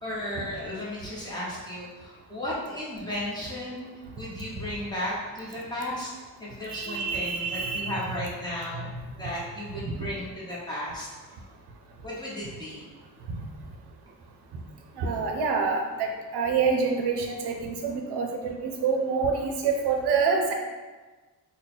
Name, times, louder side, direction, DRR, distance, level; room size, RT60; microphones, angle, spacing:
voice 1, 0.0-6.1 6.4-8.9 9.2-11.1 12.0-12.8, left 1 dB, 10° left, -8 dB, 1.0 m, -34 dB
voice 2, 6.7-8.0 9.8-10.1 13.3-13.4 15.0-20.5, right 5 dB, 85° right, 2 dB, 0.6 m, -27 dB
3.7 x 2.2 x 3.9 m, 1.3 s
wide cardioid pair, 140°, 39 cm